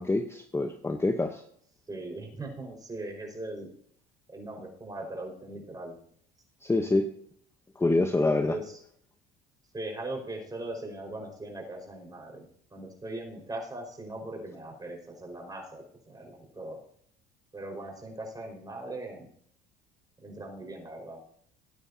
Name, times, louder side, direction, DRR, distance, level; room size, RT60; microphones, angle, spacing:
voice 1, 0.0-1.4 6.6-7.1 7.8-8.6, left 2 dB, 15° left, 7 dB, 0.9 m, -26 dB
voice 2, 1.9-3.7 4.3-6.0 8.4-8.8 9.7-16.8 17.5-19.3 20.2-21.2, right 2 dB, 20° right, 1 dB, 4.9 m, -40 dB
18.5 x 9.3 x 2.8 m, 0.64 s
supercardioid pair, 80°, 19 cm